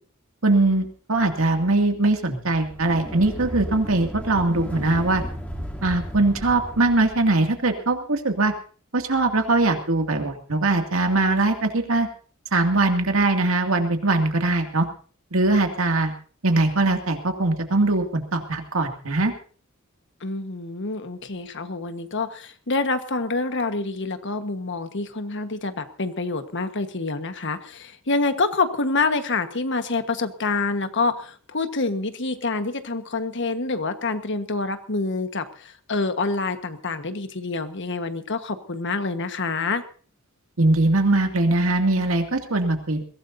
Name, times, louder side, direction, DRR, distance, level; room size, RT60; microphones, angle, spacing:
voice 1, 0.4-5.2 5.8-8.5 8.9-12.1 12.5-14.9 15.3-16.1 16.4-19.3 40.6-43.0, right 2 dB, 75° right, 5 dB, 2.4 m, -21 dB
sound 1, 2.6-7.4, equal, 5° left, 3.1 m, -34 dB
voice 2, 20.2-39.8, left 3 dB, 60° left, 9 dB, 1.4 m, -27 dB
22.0 x 17.0 x 2.7 m, 0.41 s
head